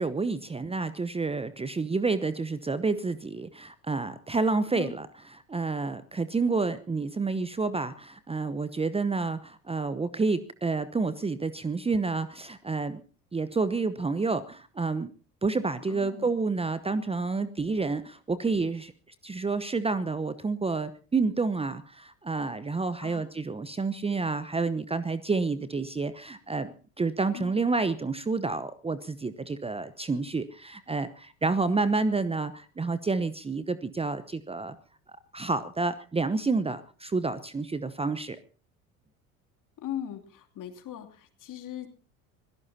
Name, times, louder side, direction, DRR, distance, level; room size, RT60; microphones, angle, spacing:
voice 1, 0.0-5.1 5.5-13.0 13.3-15.1 15.4-18.9 19.2-34.8 35.3-38.4, right 3 dB, 15° right, 14 dB, 0.9 m, -29 dB
voice 2, 15.9-16.3 23.0-23.3 27.3-27.5 39.8-41.9, left 10 dB, 45° left, 6 dB, 3.0 m, -39 dB
25.0 x 17.0 x 2.8 m, 0.37 s
hypercardioid pair, 70°, 43 cm